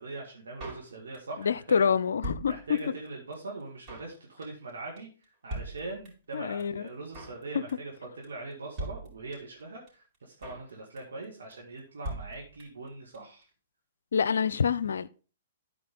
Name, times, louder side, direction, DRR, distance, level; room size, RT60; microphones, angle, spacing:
voice 1, 0.0-1.9 2.5-5.1 5.4-13.5, right 3 dB, 70° right, 2.2 m, -42 dB
Drum kit, 0.6-1.4 1.7-1.8 2.0-3.1 3.3-3.4 3.6-4.2 4.4-4.7 5.0-5.1 5.2-5.3 5.5-6.3 6.6-6.7 6.9-7.4 7.7-8.0 8.2-8.3 8.5-8.6 8.8-9.6 9.9-10.0 10.1-10.7 11.0-11.2 11.5-11.6 11.8-11.9 12.0-12.9 13.1-13.2 13.4-13.5, right 2 dB, 35° right, 4.4 m, -40 dB
voice 2, 1.4-2.8 6.3-6.9 14.1-15.1, left 6 dB, 70° left, 0.5 m, -26 dB
12.5 x 4.8 x 3.8 m
figure-of-eight pair, 115°, 0 cm